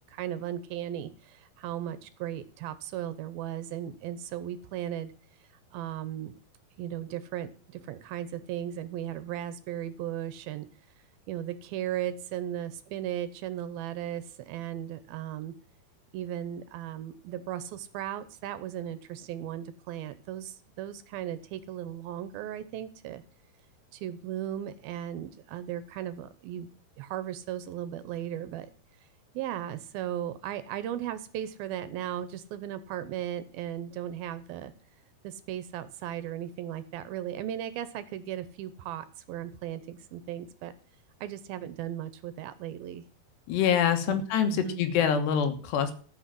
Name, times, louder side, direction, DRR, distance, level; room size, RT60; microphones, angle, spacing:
voice 1, 0.1-5.1 5.7-6.4 6.8-10.7 11.3-15.5 16.1-23.2 23.9-26.7 27.0-28.7 29.3-34.7 35.2-40.7 41.2-43.0 44.1-44.8, right 11 dB, 75° right, 13 dB, 2.4 m, -36 dB
voice 2, 43.5-45.9, left 8 dB, 90° left, 9 dB, 3.5 m, -25 dB
14.0 x 6.3 x 7.5 m, 0.42 s
omnidirectional pair, 4.7 m